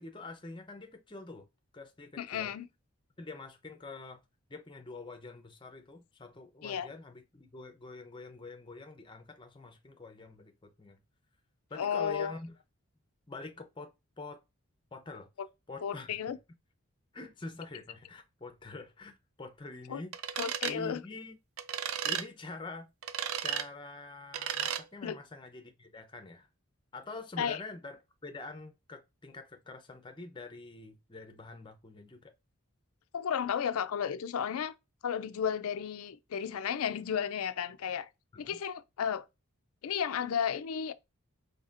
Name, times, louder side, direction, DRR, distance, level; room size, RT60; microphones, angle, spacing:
voice 1, 0.0-1.5 1.7-2.5 3.2-4.2 4.5-11.0 11.7-12.5 13.3-14.4 14.9-15.3 15.7-16.4 17.1-21.4 22.0-26.5 26.9-32.3 38.3-38.6, left 3 dB, 20° left, 0.6 m, -46 dB
voice 2, 2.2-2.7 6.6-6.9 11.8-12.3 15.8-16.4 19.9-20.0 20.4-21.0 25.0-25.2 27.4-27.6 33.1-34.7 35.0-38.1 38.4-39.3 39.8-40.9, left 8 dB, 80° left, 0.4 m, -33 dB
sound 1, 20.1-20.8 21.6-22.2 23.0-23.7 24.3-24.8, right 9 dB, 75° right, 0.4 m, -34 dB
4.1 x 3.3 x 2.5 m
head